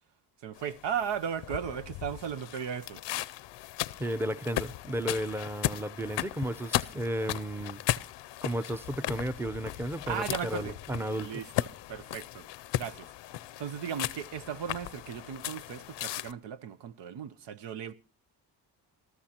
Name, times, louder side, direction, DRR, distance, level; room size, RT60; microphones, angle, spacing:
voice 1, 0.4-3.0 10.1-10.8 11.1-11.5 11.9-12.5 12.8-13.1 13.6-17.9, right 8 dB, 75° right, 0.9 m, -36 dB
sound 1, 0.6-16.3, left 14 dB, 75° left, 0.6 m, -36 dB
voice 2, 4.0-7.8 8.4-11.4, right 1 dB, 5° right, 0.7 m, -33 dB
25.0 x 14.0 x 2.9 m
cardioid pair, 65°, 43 cm